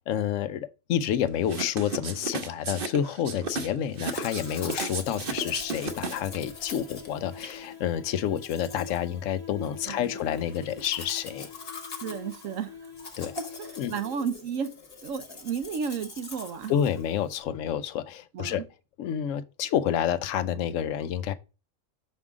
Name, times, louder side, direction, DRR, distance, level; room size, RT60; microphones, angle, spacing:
voice 1, 0.1-11.5 13.2-13.3 13.8-13.9 16.7-18.6 19.0-21.3, left 9 dB, 75° left, 0.9 m, -29 dB
sound 1, 1.5-6.4, right 4 dB, 50° right, 0.9 m, -34 dB
Domestic sounds home sounds, 4.0-17.4, left 4 dB, 50° left, 1.3 m, -43 dB
sound 2, 4.2-14.4, left 6 dB, 25° left, 1.3 m, -46 dB
voice 2, 12.0-12.9 13.4-14.7 15.0-16.7 18.3-18.6, right 6 dB, 80° right, 1.2 m, -33 dB
6.3 x 3.6 x 4.8 m
omnidirectional pair, 1.4 m